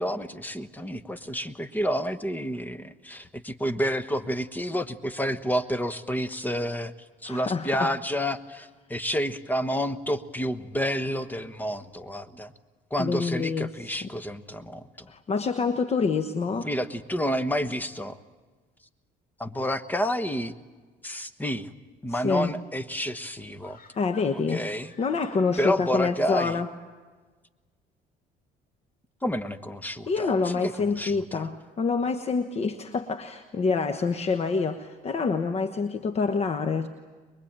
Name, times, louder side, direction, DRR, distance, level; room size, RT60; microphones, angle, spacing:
voice 1, 0.0-6.9 7.2-12.5 12.9-15.1 16.6-18.2 19.4-20.5 21.0-21.7 22.0-23.8 24.5-24.9 25.6-26.6 29.2-31.5, equal, 10° left, 10 dB, 1.2 m, -29 dB
voice 2, 7.2-7.9 13.0-13.7 15.1-16.7 22.1-22.5 24.0-24.6 25.0-26.7 30.1-36.9, left 4 dB, 40° left, 7 dB, 1.2 m, -27 dB
sound 1, 23.6-25.8 26.1-26.2, left 5 dB, 65° left, 4.7 m, -54 dB
23.5 x 22.5 x 8.8 m, 1.3 s
cardioid pair, 110°, 17 cm